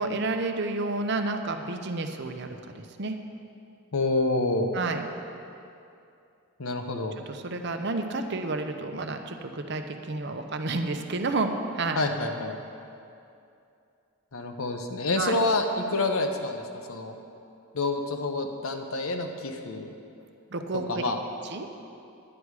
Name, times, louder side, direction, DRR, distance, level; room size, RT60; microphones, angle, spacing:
voice 1, 0.0-3.2 4.7-5.0 7.3-12.0 15.2-15.4 20.5-21.0 21.4-21.7, right 3 dB, 50° right, 6 dB, 0.7 m, -30 dB
voice 2, 3.9-4.7 6.6-7.1 12.0-12.6 14.3-16.6 16.9-17.1 17.7-19.9 20.9-21.2, left 2 dB, 75° left, 5 dB, 0.9 m, -27 dB
11.0 x 9.8 x 4.8 m, 2.6 s
head